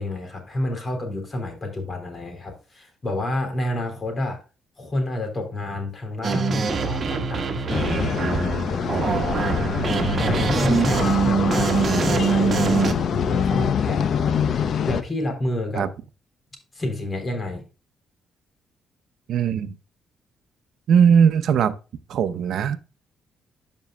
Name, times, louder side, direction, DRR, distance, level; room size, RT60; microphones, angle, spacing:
voice 1, 0.0-4.4 4.8-8.2 8.7-9.7 10.2-15.9 16.7-17.6, left 1 dB, 35° left, 3.4 m, -29 dB
sound 1, 6.2-12.9, right 5 dB, 45° right, 1.3 m, -23 dB
sound 2, 7.7-15.0, left 7 dB, 60° left, 0.7 m, -25 dB
voice 2, 19.3-19.7 20.9-21.8 22.1-22.8, right 7 dB, 70° right, 0.7 m, -19 dB
12.5 x 5.4 x 2.3 m
cardioid pair, 90°, 0 cm